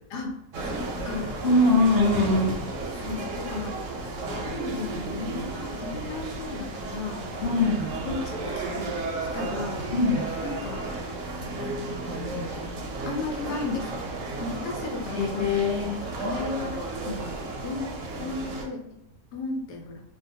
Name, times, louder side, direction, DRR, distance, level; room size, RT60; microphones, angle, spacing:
voice 1, 0.1-1.3 2.9-3.8 4.3-7.3 8.1-8.9 9.3-9.8 10.4-11.0 11.6-12.6 13.1-14.1 14.4-17.3 17.6-17.9 18.2-18.8 19.3-20.0, left 3 dB, 85° left, 1 dB, 1.2 m, -35 dB
sound 1, 0.5-18.7, right 2 dB, 70° right, 0.8 m, -33 dB
voice 2, 1.4-2.6 7.4-7.9 9.9-10.3 15.1-16.0, left 2 dB, 55° left, -8 dB, 0.7 m, -22 dB
2.7 x 2.2 x 2.5 m, 0.83 s
omnidirectional pair, 1.7 m